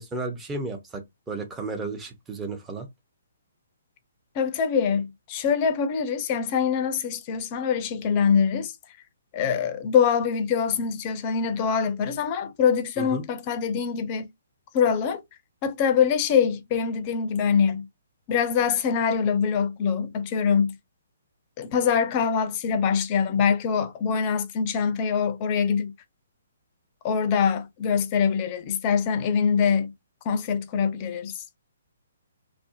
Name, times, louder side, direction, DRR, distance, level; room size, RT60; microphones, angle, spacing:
voice 1, 0.0-2.9 13.0-13.2, right 3 dB, 10° right, 0.7 m, -33 dB
voice 2, 4.4-8.7 9.3-14.3 14.7-15.2 15.6-17.9 18.3-20.8 21.6-25.9 27.0-29.9 30.3-31.4, left 6 dB, 30° left, 0.5 m, -24 dB
2.6 x 2.0 x 2.4 m
figure-of-eight pair, 130°, 0 cm